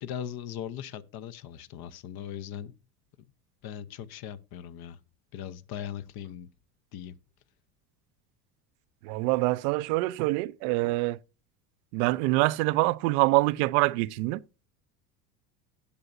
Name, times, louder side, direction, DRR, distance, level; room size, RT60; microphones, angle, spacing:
voice 1, 0.0-2.7 3.6-5.0 5.3-6.5 6.9-7.2, left 10 dB, 50° left, 1.0 m, -39 dB
voice 2, 9.0-11.2 11.9-14.4, right 21 dB, 65° right, 0.7 m, -25 dB
18.5 x 6.7 x 2.6 m
hypercardioid pair, 80°, 48 cm